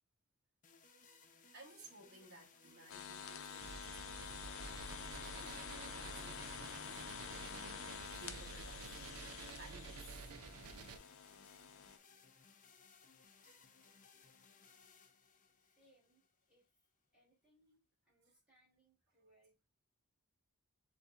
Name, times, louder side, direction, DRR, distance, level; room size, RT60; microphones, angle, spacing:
sound 1, 0.6-16.7, left 5 dB, 35° left, 0.7 m, -64 dB
voice 1, 1.5-4.7 5.4-7.6 7.9-10.3 12.7-13.1 13.4-14.0 14.6-14.7, right 2 dB, 50° right, 1.3 m, -60 dB
sound 2, 2.9-12.0, left 7 dB, 65° left, 0.7 m, -49 dB
sound 3, 3.6-11.0, right 4 dB, 80° right, 0.5 m, -51 dB
voice 2, 15.5-16.9 17.1-19.7, right 1 dB, 5° right, 2.9 m, -73 dB
6.8 x 2.8 x 2.5 m
head